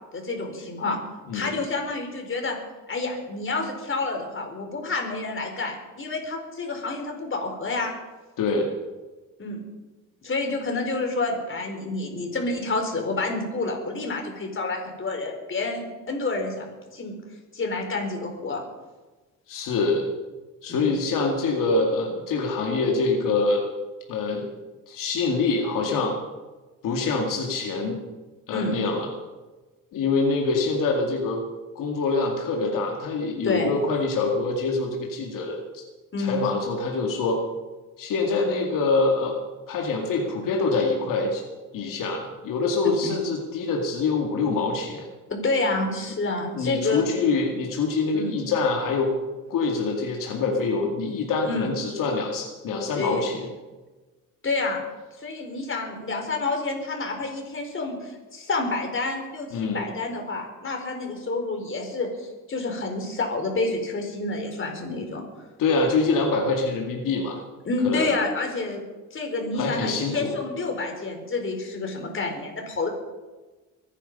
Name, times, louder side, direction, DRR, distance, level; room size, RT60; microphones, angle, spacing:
voice 1, 0.1-1.0 1.3-2.6 2.9-7.9 9.4-9.6 10.2-17.2 17.5-18.6 20.7-20.9 28.5-28.8 33.4-33.7 36.1-36.4 43.0-43.1 45.3-47.0 48.1-48.4 51.4-51.7 52.9-53.2 54.4-54.8 55.2-65.2 67.6-68.8 69.1-72.9, left 3 dB, 40° left, 2 dB, 4.6 m, -28 dB
voice 2, 8.4-8.7 19.5-20.1 20.6-23.6 24.1-24.5 24.9-26.2 26.8-28.0 28.5-29.1 29.9-31.4 31.8-35.8 36.2-37.4 38.0-39.4 39.7-41.4 41.7-45.1 46.5-49.1 49.5-53.5 59.5-59.8 65.6-67.4 67.8-68.1 69.6-70.4, left 3 dB, 75° left, 0 dB, 2.4 m, -25 dB
23.5 x 10.5 x 5.5 m, 1.2 s
cardioid pair, 90°, 32 cm